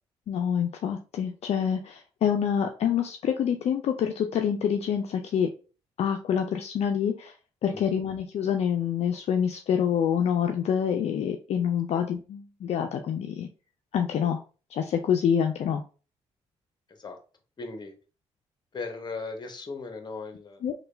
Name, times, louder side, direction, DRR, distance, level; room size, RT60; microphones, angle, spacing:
voice 1, 0.3-5.5 6.0-7.3 7.6-13.5 13.9-14.4 14.7-15.8 20.6-20.7, left 8 dB, 60° left, 4 dB, 0.4 m, -26 dB
voice 2, 17.6-17.9 18.7-20.6, left 3 dB, 35° left, 6 dB, 0.8 m, -38 dB
3.2 x 2.2 x 3.2 m, 0.35 s
supercardioid pair, 65°, 12 cm